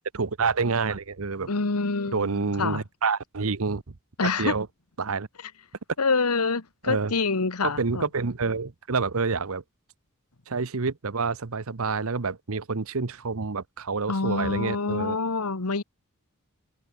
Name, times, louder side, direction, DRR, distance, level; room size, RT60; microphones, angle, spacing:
voice 1, 0.1-1.5 2.1-3.9 4.2-4.7 5.0-5.3 6.9-7.1 7.8-9.6 10.5-15.2, right 4 dB, 65° right, 0.9 m, -28 dB
voice 2, 1.5-2.8 4.2-4.5 6.0-8.0 14.1-15.8, left 4 dB, 90° left, 1.4 m, -26 dB
head